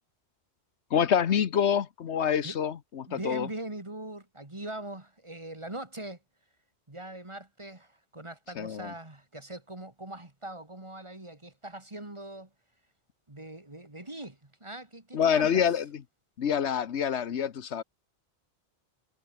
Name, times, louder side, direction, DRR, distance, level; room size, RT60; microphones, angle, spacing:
voice 1, 0.9-3.5 8.6-8.9 15.1-15.8 16.4-17.8, left 8 dB, 85° left, 1.3 m, -26 dB
voice 2, 3.1-6.2 6.9-12.5 13.3-15.7, right 1 dB, 25° right, 2.4 m, -41 dB
omnidirectional pair, 1.1 m